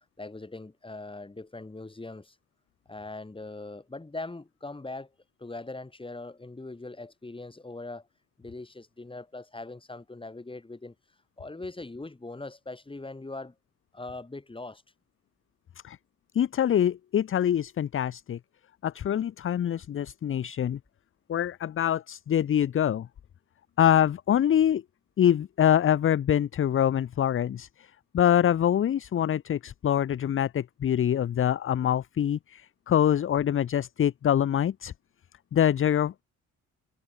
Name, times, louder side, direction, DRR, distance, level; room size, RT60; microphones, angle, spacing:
voice 1, 0.2-2.4 2.9-5.1 5.4-8.1 8.4-10.9 11.4-13.5 13.9-14.8, left 2 dB, 15° left, 6.9 m, -41 dB
voice 2, 16.3-18.4 18.8-20.8 21.3-23.1 23.8-24.8 25.2-27.9 28.1-34.9 35.5-36.1, left 10 dB, 45° left, 0.7 m, -25 dB
cardioid pair, 90°, 30 cm